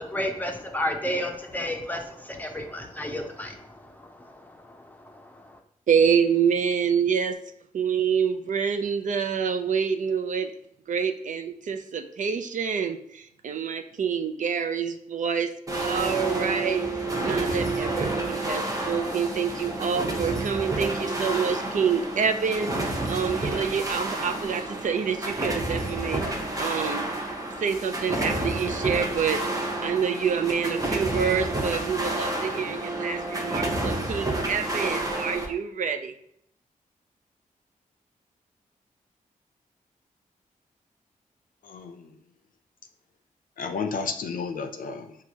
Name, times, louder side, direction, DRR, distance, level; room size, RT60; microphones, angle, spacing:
voice 1, 0.0-5.6, left 1 dB, 10° left, 3 dB, 0.6 m, -33 dB
voice 2, 5.9-7.4 7.7-10.5 10.9-16.9 17.2-27.1 27.6-36.1, right 6 dB, 60° right, 7 dB, 0.4 m, -27 dB
sound 1, 15.7-35.5, right 2 dB, 25° right, 0.7 m, -29 dB
voice 3, 41.6-42.2 43.6-45.2, left 5 dB, 70° left, 7 dB, 0.5 m, -32 dB
5.9 x 2.4 x 2.8 m, 0.71 s
wide cardioid pair, 95°, 14 cm